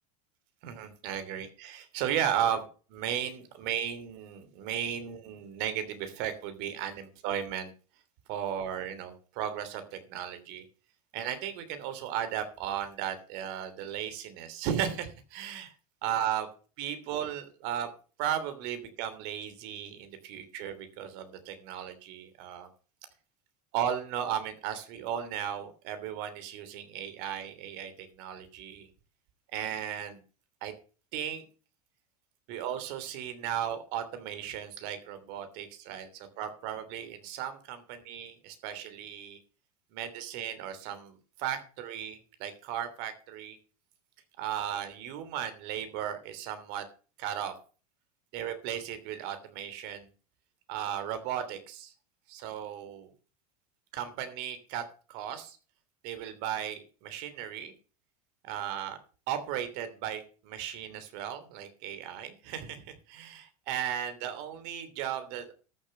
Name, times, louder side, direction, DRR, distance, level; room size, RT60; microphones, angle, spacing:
voice 1, 0.6-2.6 2.9-7.7 8.3-10.6 11.1-15.7 16.0-16.5 16.8-17.9 18.2-22.7 23.7-28.9 29.5-30.2 30.6-30.7 31.1-31.4 32.5-37.8 38.1-39.4 39.9-43.6 44.4-46.9 47.2-47.5 48.3-50.1 50.7-51.9 52.3-53.1 53.9-54.8 55.1-55.6 56.0-57.7 58.4-59.0 59.3-65.5, right 10 dB, 60° right, 10 dB, 3.0 m, -35 dB
13.0 x 7.4 x 5.5 m, 0.37 s
hypercardioid pair, 100°, 19 cm